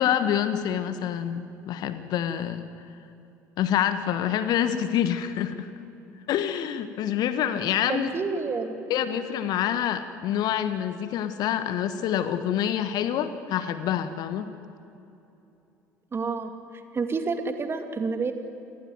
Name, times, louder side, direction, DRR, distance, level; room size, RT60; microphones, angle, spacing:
voice 1, 0.0-2.7 3.6-5.7 6.3-8.1 8.9-14.5, left 10 dB, 50° left, 11 dB, 1.4 m, -26 dB
voice 2, 7.9-8.8 16.1-16.5 16.9-18.3, right 4 dB, 30° right, 6 dB, 2.6 m, -28 dB
28.0 x 19.5 x 9.5 m, 2.8 s
figure-of-eight pair, 60°, 9 cm